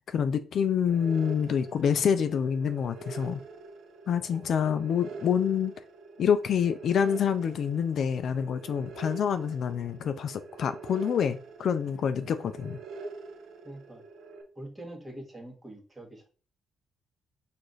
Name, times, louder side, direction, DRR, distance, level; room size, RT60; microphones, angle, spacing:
voice 1, 0.1-3.4 4.1-5.7 6.2-12.8, left 7 dB, 60° left, 0.4 m, -27 dB
sound 1, 0.9-14.4, right 3 dB, 75° right, 0.7 m, -45 dB
voice 2, 13.6-14.0 14.6-16.3, right 1 dB, 15° right, 1.3 m, -44 dB
4.8 x 2.5 x 3.9 m
cardioid pair, 90°, 0 cm